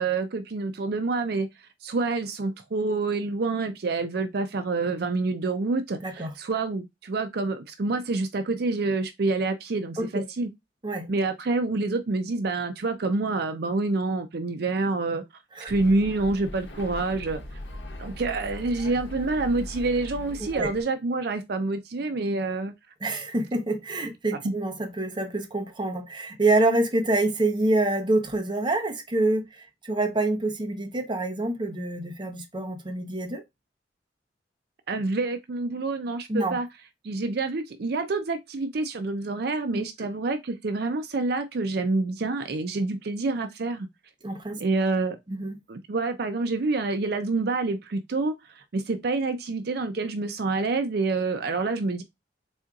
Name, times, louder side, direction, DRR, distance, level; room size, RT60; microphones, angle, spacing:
voice 1, 0.0-10.5 11.1-15.2 15.7-17.4 18.0-22.7 24.4-24.5 34.9-36.7 37.0-43.9 44.6-45.2 45.7-52.0, right 3 dB, 60° right, 0.5 m, -27 dB
voice 2, 6.0-6.3 10.0-10.2 10.8-11.1 15.6-15.7 20.4-20.7 23.0-33.4 36.3-36.6 44.2-44.6 45.3-45.5, right 2 dB, 25° right, 0.8 m, -26 dB
sound 1, 15.7-20.8, left 1 dB, 85° left, 0.9 m, -39 dB
4.3 x 3.6 x 2.3 m
head